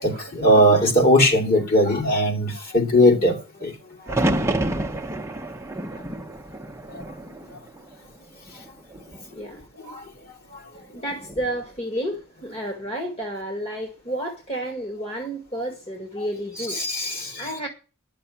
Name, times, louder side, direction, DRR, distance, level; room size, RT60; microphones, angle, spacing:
voice 1, 0.0-3.7 16.7-17.3, equal, 45° left, 2.8 m, -19 dB
sound 1, 4.1-8.1 8.5-9.2 11.1-11.6, right 1 dB, 15° right, 0.8 m, -28 dB
voice 2, 9.3-9.6 10.9-16.8 17.4-17.7, right 1 dB, 30° left, 1.9 m, -31 dB
11.5 x 6.8 x 8.4 m
head